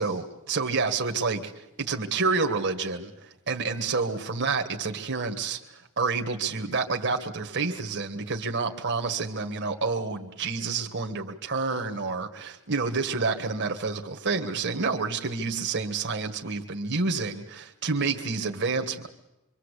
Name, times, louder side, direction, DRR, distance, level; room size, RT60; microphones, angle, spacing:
voice 1, 0.0-19.1, right 4 dB, 55° right, 1.8 m, -29 dB
26.5 x 24.5 x 8.4 m
head